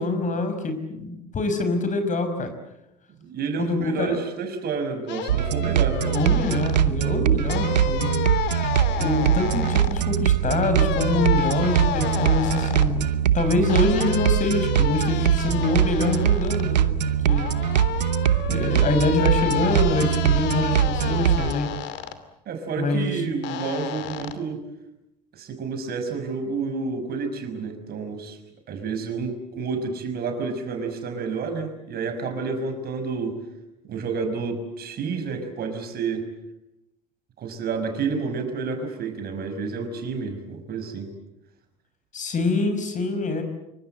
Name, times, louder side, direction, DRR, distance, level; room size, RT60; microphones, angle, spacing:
voice 1, 0.0-2.5 3.6-4.2 6.0-8.2 8.9-13.1 13.3-17.5 18.5-21.7 22.8-23.3 42.1-43.4, left 3 dB, 35° left, 8 dB, 5.7 m, -25 dB
voice 2, 3.2-6.1 7.1-7.3 22.5-24.6 25.4-28.4 28.7-33.4 33.8-36.3 37.4-41.1, right 5 dB, 50° right, 7 dB, 5.7 m, -30 dB
sound 1, 5.1-6.8 7.5-10.0 10.7-12.9 13.7-16.6 17.3-22.2 23.4-24.3, left 10 dB, 55° left, 2.7 m, -31 dB
sound 2, 5.3-21.5, right 10 dB, 85° right, 1.0 m, -22 dB
26.5 x 24.5 x 7.8 m, 0.86 s
hypercardioid pair, 65°, 21 cm